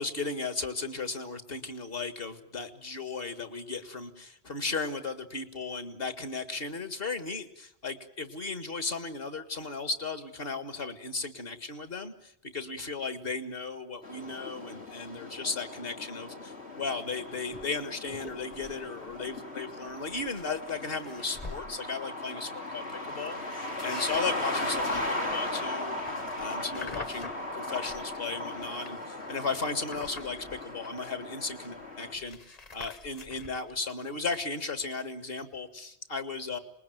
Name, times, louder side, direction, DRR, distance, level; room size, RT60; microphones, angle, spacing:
voice 1, 0.0-26.0 26.4-36.6, left 4 dB, 60° left, 10 dB, 2.0 m, -36 dB
sound 1, 14.0-32.1, left 1 dB, 90° left, 4.1 m, -37 dB
sound 2, 17.5-17.7 18.1-18.8 19.1-19.4 19.9-21.7 23.3-28.1 28.5-31.2 31.5-31.6 31.8-33.8, left 4 dB, 40° left, 1.2 m, -47 dB
27.0 x 20.5 x 9.2 m, 0.77 s
omnidirectional pair, 1.1 m